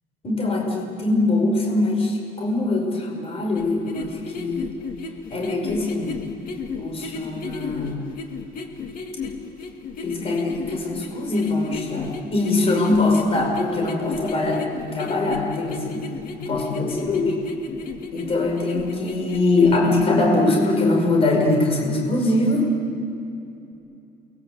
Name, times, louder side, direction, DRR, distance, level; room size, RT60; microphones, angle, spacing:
voice 1, 0.2-4.7 5.3-6.2 6.7-8.0 10.0-16.0 16.4-17.3 18.1-22.7, left 2 dB, 35° left, 0 dB, 5.4 m, -22 dB
sound 1, 3.5-20.0, left 4 dB, 55° left, 2.4 m, -34 dB
29.5 x 22.5 x 8.2 m, 2.7 s
cardioid pair, 175°, 18 cm